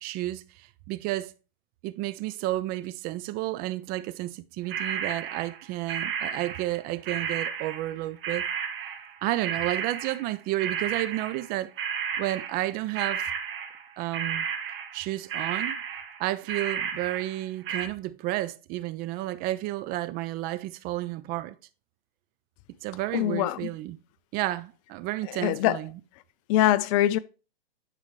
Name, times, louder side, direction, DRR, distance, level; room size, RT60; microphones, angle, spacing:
voice 1, 0.0-1.3 1.8-8.4 9.2-11.7 12.2-13.3 14.0-14.5 14.9-15.8 16.2-21.6 22.8-24.0 24.3-25.9, right 16 dB, 30° right, 0.5 m, -31 dB
sound 1, 4.7-11.5 11.8-13.9 14.1-15.0 15.3-17.8, right 7 dB, 70° right, 2.1 m, -33 dB
voice 2, 23.1-23.6 25.3-25.8 26.5-27.2, left 13 dB, 35° left, 0.4 m, -23 dB
10.5 x 4.6 x 3.1 m
hypercardioid pair, 125°, 29 cm